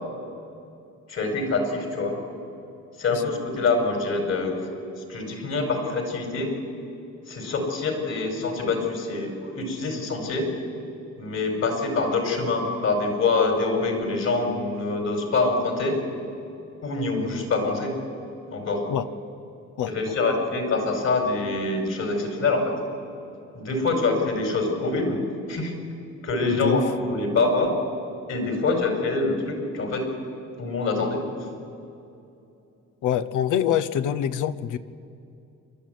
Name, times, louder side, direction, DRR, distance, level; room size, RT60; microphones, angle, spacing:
voice 1, 1.1-2.2 3.0-4.6 5.1-6.5 7.3-10.5 11.2-16.0 16.8-18.0 18.5-18.8 19.8-22.8 23.5-25.2 25.5-25.7 26.2-27.8 28.3-30.1 30.6-31.2, left 3 dB, 60° left, 3 dB, 5.3 m, -25 dB
voice 2, 19.8-20.1 26.5-26.8 33.0-34.8, left 10 dB, 80° left, 14 dB, 1.0 m, -25 dB
28.0 x 12.0 x 9.4 m, 2.7 s
cardioid pair, 90°, 30 cm